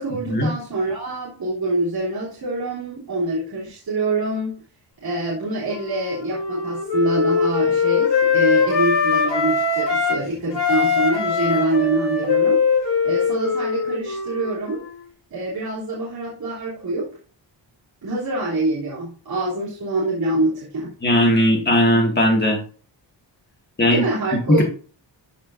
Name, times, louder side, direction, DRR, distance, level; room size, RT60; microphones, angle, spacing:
voice 1, 0.0-4.6 5.0-12.6 13.0-14.8 15.3-17.1 18.0-20.9 23.9-24.6, right 2 dB, 55° right, -9 dB, 3.5 m, -25 dB
Wind instrument woodwind instrument, 5.7-10.2 10.5-15.0, left 5 dB, 70° left, 3.7 m, -21 dB
voice 2, 21.0-22.6 23.8-24.0, equal, 25° left, 0 dB, 2.2 m, -17 dB
14.5 x 5.4 x 2.7 m, 0.40 s
wide cardioid pair, 175°, 45 cm